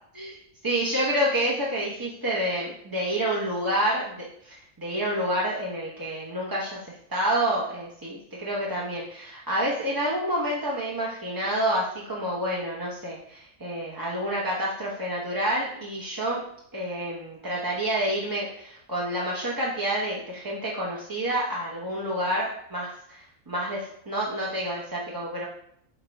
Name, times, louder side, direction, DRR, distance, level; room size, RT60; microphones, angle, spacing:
voice 1, 0.6-16.4 16.7-25.4, right 1 dB, 20° right, -5 dB, 0.7 m, -28 dB
6.5 x 4.6 x 3.4 m, 0.70 s
omnidirectional pair, 1.5 m